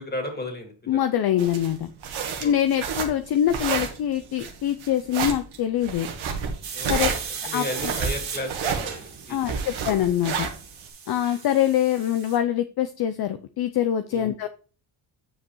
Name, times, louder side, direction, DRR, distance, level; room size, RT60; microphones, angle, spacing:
voice 1, 0.0-1.0 2.4-2.5 6.7-9.8 14.1-14.3, left 1 dB, 20° left, 4 dB, 2.3 m, -34 dB
voice 2, 0.9-1.9 2.4-6.1 6.9-7.1 7.5-7.6 9.3-10.5 11.1-14.5, left 11 dB, 55° left, 10 dB, 0.5 m, -24 dB
sound 1, 1.4-10.9, right 6 dB, 85° right, 1.4 m, -30 dB
sound 2, 6.6-12.4, right 6 dB, 70° right, 2.3 m, -37 dB
8.8 x 5.2 x 3.0 m, 0.37 s
cardioid pair, 90°, 47 cm